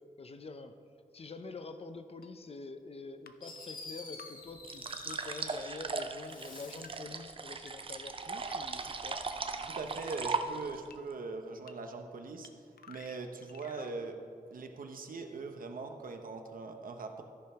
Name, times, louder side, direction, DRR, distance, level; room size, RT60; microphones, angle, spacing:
voice 1, 0.2-0.8 1.1-9.2, left 3 dB, 40° left, 9 dB, 0.6 m, -46 dB
sound 1, 2.2-2.3 3.3-3.4 4.2-4.3 5.1-5.2 6.0-6.1 6.8-6.9 7.7-7.8 8.5-8.6 9.3-9.4 10.1-10.2 10.9-11.0 11.7-11.8 12.4-12.5 12.8-14.0, left 7 dB, 85° left, 0.6 m, -52 dB
Fireworks, 3.0-3.1 3.4-5.8 6.2-7.0, left 3 dB, 70° left, 1.5 m, -48 dB
sound 2, 4.6-10.9, right 4 dB, 35° right, 0.5 m, -38 dB
voice 2, 9.7-14.2 14.5-17.2, right 3 dB, 70° right, 5 dB, 0.9 m, -41 dB
13.5 x 5.4 x 5.6 m, 2.2 s
wide cardioid pair, 155°, 15 cm